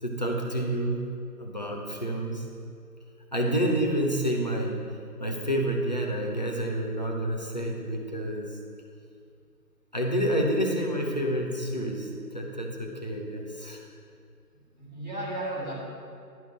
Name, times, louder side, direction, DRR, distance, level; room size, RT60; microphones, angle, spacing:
voice 1, 0.0-1.0 1.4-2.5 3.3-4.8 5.2-8.6 9.9-13.9, right 1 dB, 25° left, -1 dB, 0.6 m, -29 dB
voice 2, 14.5-15.7, right 1 dB, 25° right, -7 dB, 1.8 m, -35 dB
11.0 x 4.7 x 5.8 m, 2.4 s
figure-of-eight pair, 155°, 49 cm